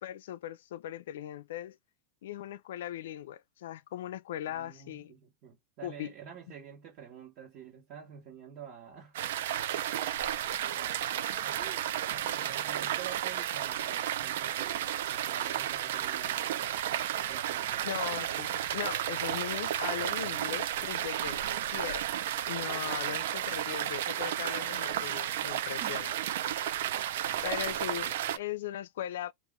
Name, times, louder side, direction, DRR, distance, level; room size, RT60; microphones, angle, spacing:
voice 1, 0.0-1.8 2.2-5.1 5.8-6.1 17.8-22.1 22.5-26.1 27.4-29.3, left 12 dB, 90° left, 0.3 m, -39 dB
voice 2, 4.5-9.2 10.7-16.7 17.2-17.9 25.8-26.1 27.2-27.8 28.2-28.4, right 8 dB, 40° right, 1.2 m, -49 dB
sound 1, 9.1-28.4, right 11 dB, 75° right, 0.4 m, -33 dB
3.0 x 2.5 x 3.5 m
supercardioid pair, 175°, 0 cm